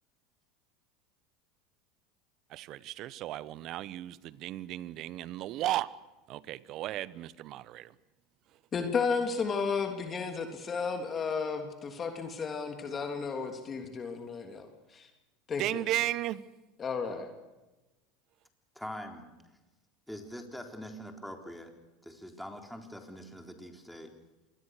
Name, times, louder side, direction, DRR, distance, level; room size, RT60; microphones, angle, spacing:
voice 1, 2.5-5.9 6.3-7.9 15.6-16.4, right 14 dB, 55° right, 1.0 m, -35 dB
voice 2, 8.7-14.7 14.9-15.1 15.5-15.8 16.8-17.3, left 5 dB, 30° left, 3.2 m, -33 dB
voice 3, 18.8-19.3 20.1-21.7 22.0-24.1, equal, ahead, 3.9 m, -43 dB
26.5 x 21.0 x 6.6 m
hypercardioid pair, 90°, 0 cm